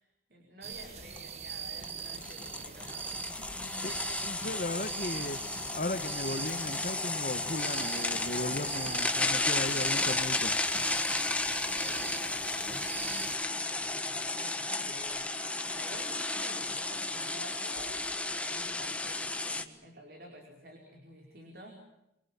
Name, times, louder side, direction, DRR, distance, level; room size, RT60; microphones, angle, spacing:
voice 1, 0.0-4.5 11.6-21.8, equal, 55° right, 1 dB, 4.9 m, -51 dB
sound 1, 0.6-13.4, right 6 dB, 35° right, 1.5 m, -42 dB
sound 2, 0.7-0.8 1.2-1.3 1.8-19.6, left 2 dB, 5° left, 1.3 m, -33 dB
voice 2, 3.8-5.4 5.7-10.5, left 1 dB, 50° left, 8 dB, 1.4 m, -36 dB
27.0 x 22.0 x 7.4 m, 0.86 s
head